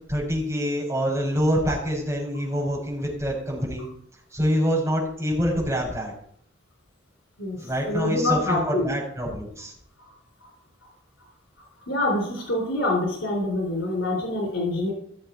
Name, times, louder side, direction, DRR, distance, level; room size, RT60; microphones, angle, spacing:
voice 1, 0.1-3.8 4.3-6.1 7.6-9.7, equal, 15° right, -4 dB, 6.0 m, -26 dB
voice 2, 7.4-8.9 10.0-10.1 10.4-10.5 11.9-14.9, left 1 dB, 85° left, -1 dB, 3.8 m, -26 dB
16.0 x 7.5 x 4.6 m, 0.64 s
head